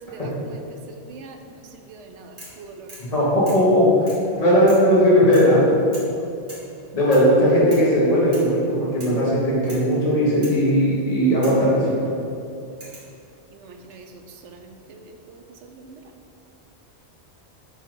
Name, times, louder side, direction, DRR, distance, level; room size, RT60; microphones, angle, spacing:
voice 1, 0.0-2.9 6.1-6.3 12.7-12.8 13.5-16.0, right 4 dB, 85° right, 5 dB, 0.9 m, -43 dB
sound 1, 2.4-2.6 2.9-3.1 3.5-3.7 4.1-4.3 4.7-4.9 5.3-5.6 5.9-6.1 6.5-6.7 7.1-7.3 7.7-7.9 8.3-8.6 9.0-9.2 9.7-9.9 10.4-10.6 11.4-11.7 12.8-13.1 14.3-14.8, right 1 dB, 55° right, 1.8 m, -42 dB
voice 2, 3.1-3.8 4.4-5.6 6.9-12.0, equal, 35° left, -7 dB, 1.5 m, -18 dB
7.0 x 2.9 x 5.2 m, 2.6 s
omnidirectional pair, 1.2 m